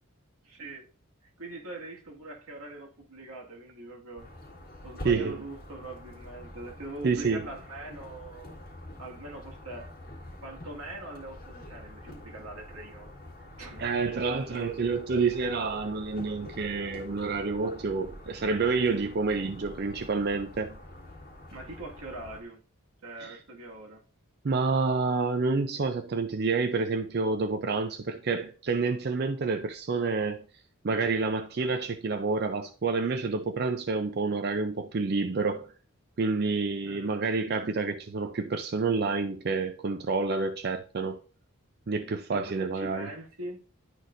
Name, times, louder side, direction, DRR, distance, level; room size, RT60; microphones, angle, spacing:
voice 1, 0.4-0.9 1.2-4.3 4.8-8.6 9.0-9.9 10.4-13.2 13.6-14.2 14.5-14.8 21.5-22.6 23.0-24.0 36.8-37.2 42.3-43.8, right 2 dB, 90° right, 1.8 m, -42 dB
sound 1, 4.2-22.4, left 1 dB, 40° left, 1.9 m, -46 dB
voice 2, 5.0-5.4 7.0-7.4 13.8-20.8 23.2-23.4 24.4-30.4 30.8-35.7 36.2-41.2 41.9-43.1, right 4 dB, 45° right, 0.4 m, -28 dB
11.0 x 4.1 x 2.5 m
head